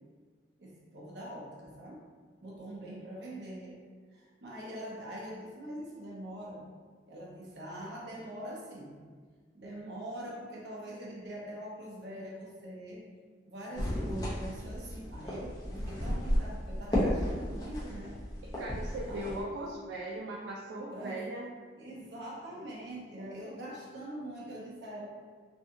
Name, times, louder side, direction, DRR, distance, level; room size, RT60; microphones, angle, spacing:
voice 1, 0.6-2.1 2.4-6.7 7.1-9.0 9.5-13.1 13.4-18.2 19.1-19.3 20.9-21.3 21.8-25.1, right 1 dB, 70° right, -4 dB, 0.7 m, -43 dB
sound 1, 13.8-19.4, equal, 20° left, 0.7 m, -33 dB
voice 2, 18.6-21.5, right 1 dB, 85° right, -2 dB, 0.3 m, -38 dB
2.6 x 2.4 x 2.6 m, 1.5 s
head